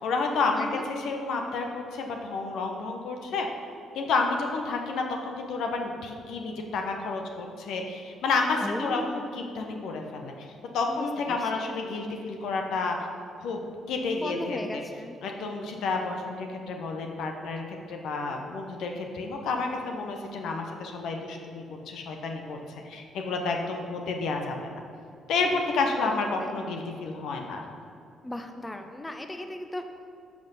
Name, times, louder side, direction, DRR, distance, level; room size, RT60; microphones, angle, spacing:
voice 1, 0.0-3.5 3.9-9.0 9.3-10.3 10.7-13.0 13.4-13.6 13.9-14.8 15.2-17.6 17.9-22.6 22.8-24.5 25.3-27.6, left 3 dB, 60° left, 3 dB, 1.0 m, -30 dB
voice 2, 0.6-0.9 8.6-9.2 10.9-11.8 14.1-15.2 15.5-15.9 25.9-26.1 26.4-26.5 28.2-29.8, left 1 dB, 15° left, 6 dB, 1.0 m, -37 dB
11.5 x 6.2 x 5.5 m, 2.4 s
figure-of-eight pair, 40°, 0 cm